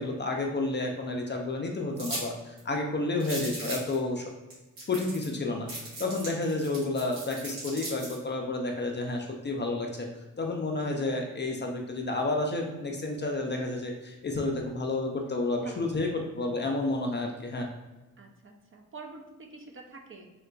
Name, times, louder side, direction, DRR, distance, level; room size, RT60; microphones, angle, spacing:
voice 1, 0.0-4.3 4.9-5.7 6.0-10.1 10.4-17.7, left 2 dB, 35° left, 1 dB, 0.4 m, -30 dB
sound 1, 2.0-2.3 2.6-2.7 3.2-3.9 4.5-4.6 4.8-5.3 5.7-8.2, right 2 dB, 85° right, 1.4 m, -38 dB
voice 2, 15.6-16.3 18.2-20.3, right 3 dB, 40° right, 2 dB, 0.4 m, -47 dB
3.6 x 2.4 x 2.2 m, 1.1 s
cardioid pair, 95°, 35 cm